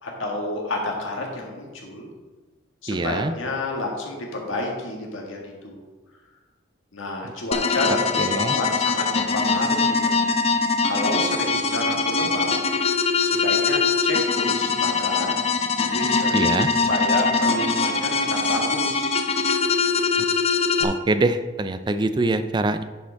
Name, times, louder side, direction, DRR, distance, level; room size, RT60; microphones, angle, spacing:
voice 1, 0.0-2.1 2.8-5.8 6.9-10.2 10.8-12.5 13.2-15.4 15.8-19.2, left 2 dB, 80° left, 0 dB, 1.7 m, -30 dB
voice 2, 2.9-3.3 7.9-8.6 16.3-16.7 20.8-22.8, right 2 dB, 20° right, 10 dB, 0.3 m, -24 dB
sound 1, 7.5-20.8, left 4 dB, 30° left, 0.5 m, -22 dB
10.5 x 5.1 x 3.4 m, 1.3 s
head